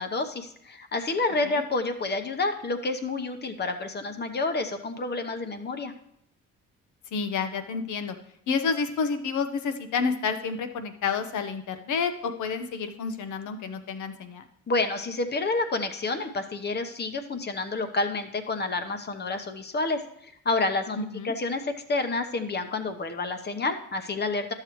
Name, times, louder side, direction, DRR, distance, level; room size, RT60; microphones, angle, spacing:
voice 1, 0.0-5.9 14.7-21.0 21.2-24.5, left 3 dB, 35° left, 8 dB, 0.9 m, -29 dB
voice 2, 7.1-8.2 8.5-14.4 20.9-21.3, left 5 dB, 75° left, 8 dB, 0.9 m, -29 dB
11.5 x 6.7 x 3.1 m, 0.73 s
cardioid pair, 90°, 30 cm